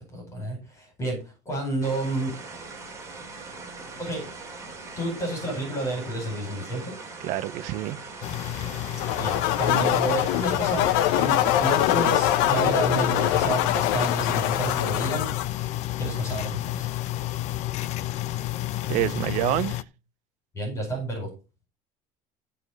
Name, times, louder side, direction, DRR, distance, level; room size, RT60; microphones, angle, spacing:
voice 1, 0.1-2.3 4.0-4.2 5.0-7.0 9.2-10.9 11.1-15.3 16.0-16.9 20.5-21.3, right 2 dB, 20° left, 5.1 m, -30 dB
sound 1, 1.8-13.6, right 3 dB, 20° right, 3.0 m, -41 dB
voice 2, 7.2-8.0 18.9-19.8, right 16 dB, 60° right, 0.6 m, -27 dB
sound 2, 8.2-19.8, left 14 dB, 55° left, 0.6 m, -31 dB
sound 3, 9.0-15.5, left 13 dB, 80° left, 0.9 m, -24 dB
14.5 x 4.9 x 5.2 m
cardioid pair, 160°, 14 cm